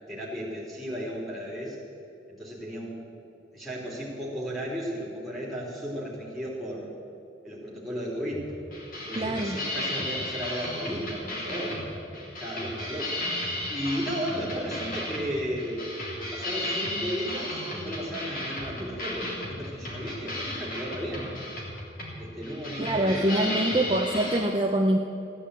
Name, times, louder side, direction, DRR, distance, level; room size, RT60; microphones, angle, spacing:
voice 1, 0.1-1.8 2.3-3.0 3.5-6.9 7.4-8.5 8.9-15.9 16.2-21.3 22.2-23.6, equal, ahead, -5 dB, 3.6 m, -34 dB
sound 1, 8.3-24.4, left 1 dB, 45° left, 3.3 m, -34 dB
voice 2, 9.2-9.6 22.8-25.0, right 1 dB, 25° right, 1 dB, 0.7 m, -25 dB
15.5 x 10.0 x 8.6 m, 2.7 s
head